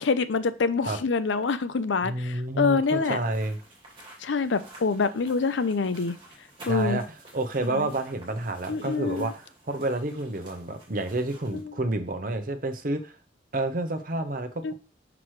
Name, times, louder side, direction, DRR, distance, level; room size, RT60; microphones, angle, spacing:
voice 1, 0.0-3.2 4.2-6.2 6.7-7.0 7.7-7.9 8.7-9.3 11.5-11.7 14.6-14.7, left 4 dB, 80° left, 13 dB, 0.5 m, -26 dB
voice 2, 2.0-3.6 6.7-7.0 7.3-13.1 13.5-14.7, right 2 dB, 45° right, 7 dB, 0.8 m, -29 dB
sound 1, 2.9-11.6, right 1 dB, 25° right, 2.6 m, -51 dB
6.0 x 5.9 x 3.2 m, 0.34 s
head